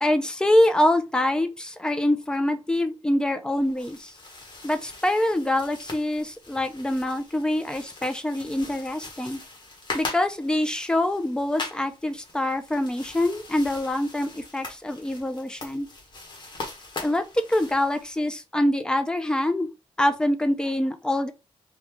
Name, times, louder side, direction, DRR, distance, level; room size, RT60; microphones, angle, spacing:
voice 1, 0.0-4.1 4.6-9.4 9.9-15.9 17.0-19.7 20.0-21.3, left 1 dB, 5° left, 0.4 m, -25 dB
sound 1, 3.6-18.4, left 3 dB, 45° left, 1.1 m, -41 dB
3.6 x 2.3 x 3.0 m
wide cardioid pair, 160°, 11 cm